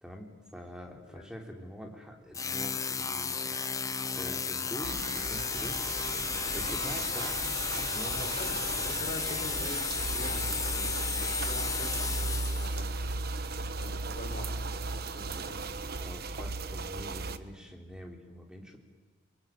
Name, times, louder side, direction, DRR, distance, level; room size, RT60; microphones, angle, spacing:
voice 1, 0.0-3.9 4.2-5.8 6.5-8.3 15.1-15.5 16.0-18.8, equal, 5° right, 2 dB, 3.6 m, -45 dB
sound 1, 2.3-12.9, left 5 dB, 15° left, 0.9 m, -33 dB
sound 2, 4.8-17.4, right 3 dB, 50° right, 1.2 m, -36 dB
voice 2, 8.2-13.4 13.8-14.9 15.1-15.7, left 1 dB, 40° left, 2 dB, 4.8 m, -44 dB
29.5 x 22.5 x 9.1 m, 1.4 s
head